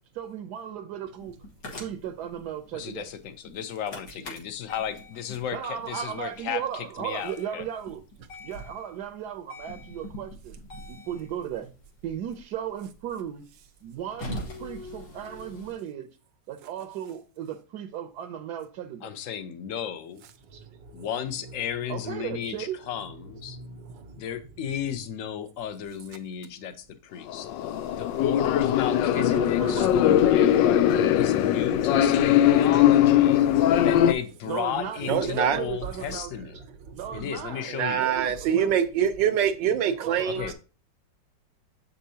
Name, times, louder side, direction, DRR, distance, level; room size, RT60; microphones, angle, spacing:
voice 1, 0.1-1.3 1.8-3.1 4.1-4.2 5.5-8.0 8.4-10.6 10.9-11.7 12.0-13.4 13.8-16.1 16.5-19.1 20.5-20.6 21.9-22.8 29.1-30.2 31.7-31.8 33.3-33.5 34.0-36.3 36.9-38.8 40.0-40.5, right 9 dB, 70° right, 1.1 m, -36 dB
sound 1, 1.2-15.7, left 1 dB, 75° left, 2.3 m, -43 dB
voice 2, 2.7-7.6 19.0-20.2 20.9-23.6 24.2-27.5 28.0-30.6 31.2-33.4 33.8-36.6 37.1-38.1 40.3-40.5, left 9 dB, 55° left, 1.0 m, -34 dB
sound 2, 27.3-34.1, left 11 dB, 90° left, 1.3 m, -20 dB
voice 3, 35.1-35.6 37.7-40.4, right 8 dB, 90° right, 1.5 m, -24 dB
7.5 x 5.6 x 2.7 m
omnidirectional pair, 1.9 m